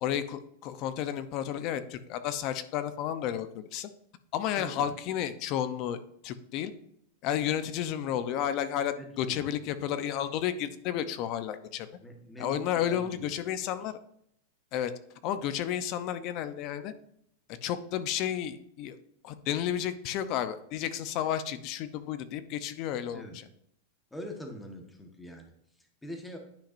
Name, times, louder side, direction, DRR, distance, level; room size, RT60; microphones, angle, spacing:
voice 1, 0.0-3.9 4.3-6.7 7.2-11.9 12.4-14.0 14.7-14.9 15.2-16.9 17.6-19.0 19.2-23.4, left 10 dB, 40° left, 12 dB, 0.7 m, -32 dB
voice 2, 4.6-4.9 8.9-9.5 12.0-13.5 23.1-23.4 24.1-26.4, equal, 5° left, 3 dB, 1.3 m, -44 dB
10.0 x 5.9 x 2.6 m, 0.71 s
supercardioid pair, 150°, 0 cm